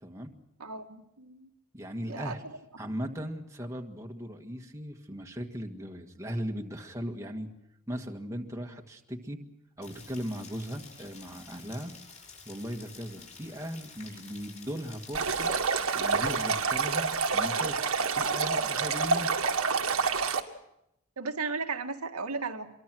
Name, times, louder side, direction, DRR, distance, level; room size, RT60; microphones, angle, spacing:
voice 1, 0.0-0.3 1.7-2.4 2.8-7.5 7.9-9.4 9.8-11.9 12.5-15.5 16.0-19.3, equal, 15° right, 2 dB, 1.7 m, -38 dB
voice 2, 0.6-1.5 2.1-2.3 21.2-22.8, right 4 dB, 90° right, 4 dB, 1.9 m, -35 dB
Rain, 9.8-16.5, left 5 dB, 30° left, 6.5 m, -50 dB
Stream, 15.1-20.4, right 5 dB, 70° right, 1.8 m, -28 dB
25.5 x 23.0 x 6.2 m, 0.81 s
head